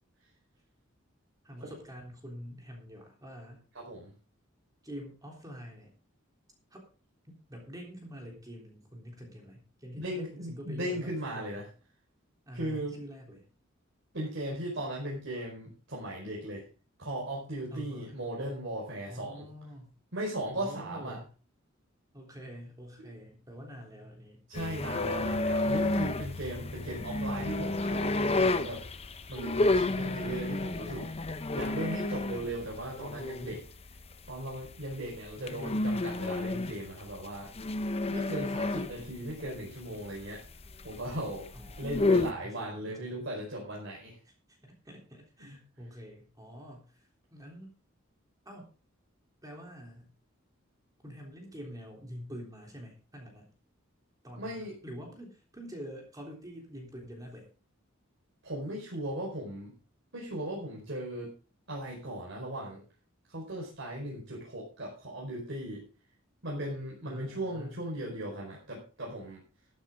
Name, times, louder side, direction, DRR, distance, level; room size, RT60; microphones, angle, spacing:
voice 1, 1.4-3.7 4.8-5.9 6.7-6.8 7.2-11.6 12.5-13.4 17.7-18.2 19.1-19.9 20.6-21.3 22.1-24.4 35.4-36.0 41.5-43.1 44.2-47.7 48.5-48.7 49.4-50.1 51.0-53.5 54.2-57.5 67.1-67.8, equal, 20° right, 0 dB, 3.5 m, -46 dB
voice 2, 3.7-4.1 10.0-11.6 12.5-13.0 14.1-16.6 17.0-19.4 20.1-21.2 23.0-23.1 24.5-28.8 29.3-31.1 31.5-33.6 34.3-37.5 38.1-40.4 40.8-41.5 41.8-44.1 45.5-45.6 54.3-54.8 58.4-59.7 60.1-61.3 61.7-62.8 63.3-65.8 66.4-69.4, right 1 dB, 65° right, -3 dB, 4.9 m, -37 dB
sound 1, 24.5-42.3, left 2 dB, 30° left, 0.8 m, -31 dB
13.5 x 12.5 x 3.7 m, 0.35 s
head